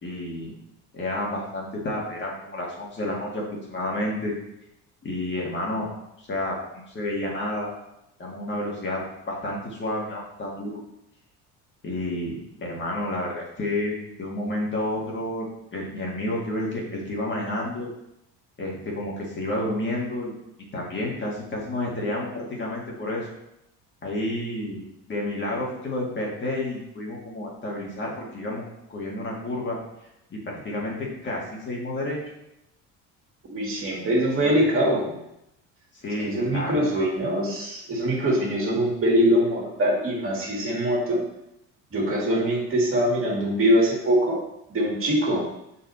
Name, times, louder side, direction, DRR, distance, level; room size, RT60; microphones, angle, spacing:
voice 1, 0.0-0.5 0.9-4.3 5.0-5.9 6.2-7.7 8.2-10.8 11.8-15.5 15.7-17.9 18.6-20.3 20.7-23.3 24.0-24.8 25.1-28.6 28.9-29.8 30.3-32.2 34.4-34.6 35.9-37.0, left 1 dB, 35° left, -3 dB, 2.0 m, -30 dB
voice 2, 33.5-35.1 36.2-41.2 41.9-44.4 44.7-45.4, equal, 40° right, -3 dB, 2.2 m, -23 dB
6.2 x 4.4 x 4.2 m, 0.83 s
cardioid pair, 110°, 33 cm